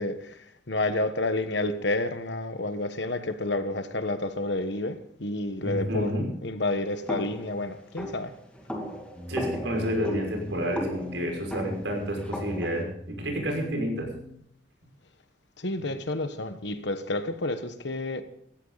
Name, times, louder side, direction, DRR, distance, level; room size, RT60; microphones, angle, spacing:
voice 1, 0.0-8.3 15.6-18.2, left 2 dB, 65° left, 1.3 m, -30 dB
voice 2, 5.6-6.3 9.3-14.1, equal, 75° right, 5.9 m, -30 dB
sound 1, 7.1-12.8, equal, 5° left, 2.4 m, -37 dB
sound 2, 9.2-14.4, left 1 dB, 15° right, 2.6 m, -42 dB
17.5 x 15.0 x 4.1 m
head